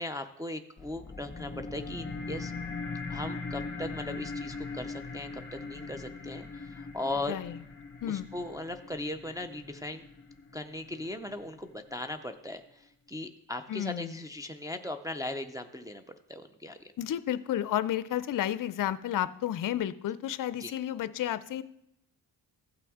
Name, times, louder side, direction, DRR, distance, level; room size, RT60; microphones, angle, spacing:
voice 1, 0.0-2.5 3.1-7.4 8.1-10.0 10.5-12.8 13.1-16.0 16.3-16.8 20.6-20.7, left 1 dB, 10° right, 4 dB, 0.4 m, -38 dB
sound 1, 0.8-11.8, left 3 dB, 30° left, 2.2 m, -40 dB
voice 2, 7.3-7.6 8.0-8.3 13.7-14.2 17.0-21.6, left 11 dB, 50° left, 14 dB, 0.5 m, -32 dB
15.0 x 5.9 x 3.6 m, 0.78 s
cardioid pair, 110°, 42 cm